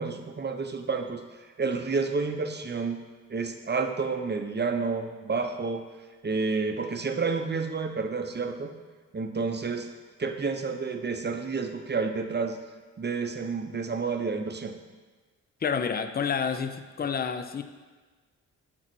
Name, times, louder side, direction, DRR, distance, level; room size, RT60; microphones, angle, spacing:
voice 1, 0.0-3.0 3.3-5.9 6.2-8.7 9.1-9.9 10.2-12.6 13.0-14.7, right 4 dB, 30° right, 6 dB, 0.8 m, -30 dB
voice 2, 15.6-17.6, left 6 dB, 25° left, 10 dB, 0.5 m, -29 dB
6.0 x 4.0 x 6.1 m, 1.4 s
supercardioid pair, 50°, 36 cm